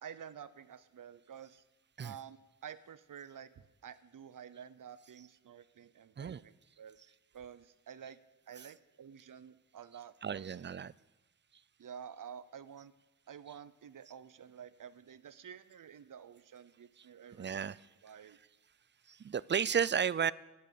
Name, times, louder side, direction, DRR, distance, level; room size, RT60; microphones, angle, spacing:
voice 1, 0.0-1.6 2.0-8.2 8.5-10.6 11.8-12.9 13.3-17.7 18.0-18.4, right 8 dB, 75° right, 15 dB, 0.7 m, -50 dB
voice 2, 10.2-10.9 17.4-17.8 19.1-20.3, right 7 dB, 35° right, 20 dB, 0.4 m, -33 dB
11.5 x 9.1 x 8.4 m, 1.0 s
wide cardioid pair, 90°, 32 cm